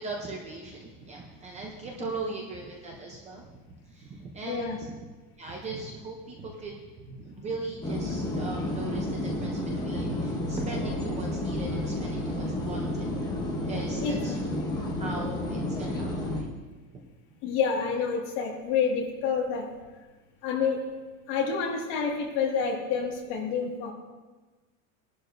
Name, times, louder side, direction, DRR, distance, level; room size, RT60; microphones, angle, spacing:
voice 1, 0.0-3.6 3.9-5.0 5.4-13.4 13.7-14.4 15.0-16.5, right 3 dB, 15° right, 0 dB, 0.6 m, -39 dB
voice 2, 4.4-4.8 14.0-14.1 14.6-14.7 17.4-19.7 20.4-20.8 21.3-23.9, left 6 dB, 45° left, 0 dB, 2.0 m, -28 dB
sound 1, 7.8-16.4, left 1 dB, 10° left, 0.9 m, -31 dB
19.5 x 11.0 x 2.6 m, 1.2 s
supercardioid pair, 180°, 44 cm